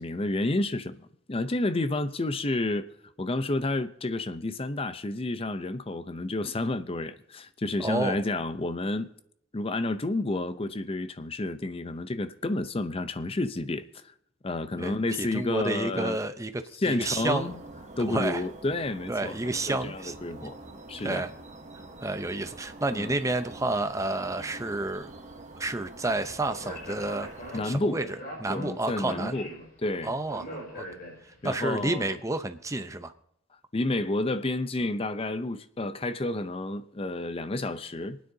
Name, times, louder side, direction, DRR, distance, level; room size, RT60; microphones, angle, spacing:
voice 1, 0.0-2.9 3.2-9.1 9.5-13.9 14.4-16.2 16.8-17.6 18.0-20.6 20.9-21.2 22.9-23.1 27.5-28.0 28.5-29.5 29.8-30.1 31.4-32.1 33.7-38.2, left 2 dB, 30° left, 0.6 m, -30 dB
voice 2, 7.8-8.2 14.8-17.5 18.0-18.4 19.1-20.2 20.4-20.5 21.0-21.3 22.0-25.1 25.6-27.3 27.6-29.3 30.0-30.9 31.2-33.1, right 2 dB, 15° right, 0.7 m, -30 dB
sound 1, 17.0-27.7, right 2 dB, 40° right, 1.2 m, -46 dB
Speech, 26.4-31.5, equal, 50° left, 4.8 m, -42 dB
27.0 x 9.5 x 2.7 m
head